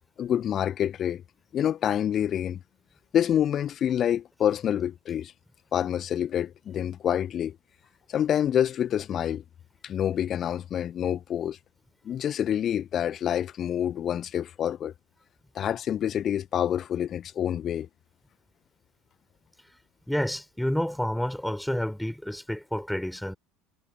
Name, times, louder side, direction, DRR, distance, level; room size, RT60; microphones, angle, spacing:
voice 1, 0.2-1.2 1.5-2.6 3.1-5.3 5.7-7.5 8.1-9.4 9.8-11.6 12.0-14.9 15.5-17.9, left 10 dB, 35° left, 1.6 m, -27 dB
voice 2, 20.1-23.3, left 1 dB, ahead, 5.8 m, -29 dB
figure-of-eight pair, 70°, 0 cm